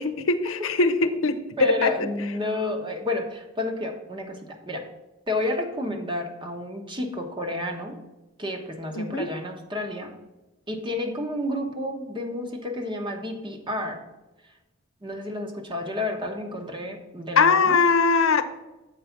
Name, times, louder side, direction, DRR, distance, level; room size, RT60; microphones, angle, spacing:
voice 1, 0.0-2.1 8.9-9.3 17.4-18.4, left 4 dB, 85° left, 9 dB, 0.7 m, -21 dB
voice 2, 1.6-4.8 5.3-8.0 8.4-10.1 10.7-14.0 15.0-17.8, left 2 dB, 25° right, 3 dB, 1.1 m, -30 dB
7.5 x 4.7 x 5.8 m, 1.1 s
head